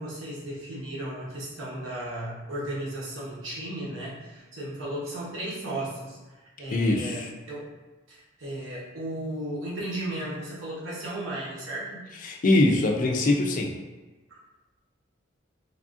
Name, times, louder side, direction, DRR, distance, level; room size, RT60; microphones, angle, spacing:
voice 1, 0.0-7.7 8.1-12.0 14.3-14.4, right 1 dB, 75° right, -6 dB, 0.9 m, -35 dB
voice 2, 6.7-7.3 12.2-13.7, left 2 dB, 40° left, 1 dB, 0.3 m, -23 dB
3.3 x 2.4 x 2.5 m, 1.2 s
head